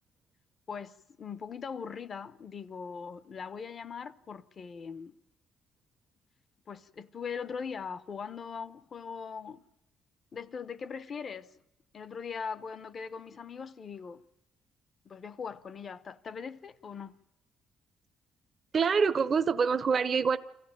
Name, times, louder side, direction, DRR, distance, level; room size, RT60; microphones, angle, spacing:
voice 1, 0.7-5.1 6.7-9.6 10.3-11.5 11.9-14.2 15.0-17.2, left 6 dB, 50° left, 0.9 m, -40 dB
voice 2, 18.7-20.4, right 5 dB, 45° right, 0.7 m, -25 dB
25.0 x 15.0 x 9.0 m
cardioid pair, 90°, 0 cm